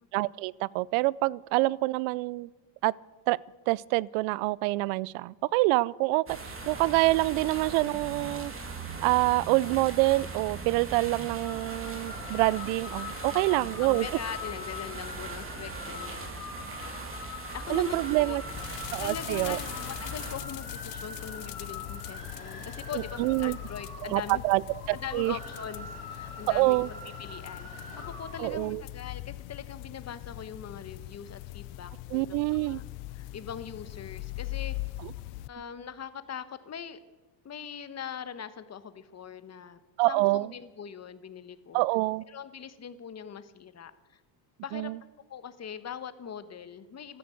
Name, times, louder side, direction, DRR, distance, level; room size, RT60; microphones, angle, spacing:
voice 1, 0.1-2.5 2.8-2.9 3.3-3.4 3.7-8.5 9.0-14.1 17.7-18.4 18.9-19.6 22.9-23.6 24.0-24.6 24.9-25.4 26.5-26.9 28.4-28.8 32.1-32.8 40.0-40.5 41.7-42.2 44.7-45.0, right 21 dB, 85° right, 25 dB, 0.6 m, -26 dB
sound 1, 6.3-20.4, right 3 dB, 25° right, 2.7 m, -40 dB
sound 2, 11.4-28.7, left 3 dB, 15° left, 6.9 m, -43 dB
voice 2, 13.3-16.3 17.5-18.4 19.0-24.4 24.9-26.8 27.2-32.8 33.1-34.8 35.5-37.0 37.4-39.8 40.1-41.8 42.3-44.2 44.6-44.9 45.3-47.2, left 8 dB, 30° left, 13 dB, 1.2 m, -41 dB
sound 3, 18.5-35.5, left 19 dB, 80° left, 0.6 m, -41 dB
14.5 x 12.5 x 7.7 m, 1.2 s
cardioid pair, 110°, 49 cm